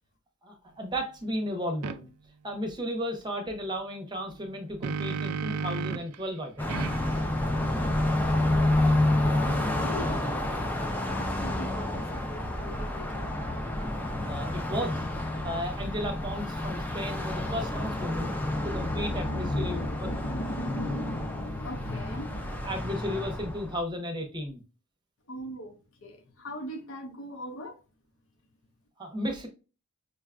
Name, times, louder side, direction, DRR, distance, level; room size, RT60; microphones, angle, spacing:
voice 1, 0.4-2.1 2.4-6.7 14.3-15.0 15.4-18.3 18.6-20.1 22.6-24.6 29.0-29.5, equal, 20° right, 0.7 m, -34 dB
sound 1, 1.8-2.0 4.4-6.2 6.7-10.0, right 5 dB, 80° right, 0.3 m, -36 dB
Car passing by, 6.6-23.8, left 1 dB, 10° left, 0.4 m, -29 dB
voice 2, 9.2-10.6 11.0-13.4 18.8-22.7 25.3-27.8, left 1 dB, 60° left, 0.7 m, -38 dB
5.3 x 2.3 x 2.3 m
head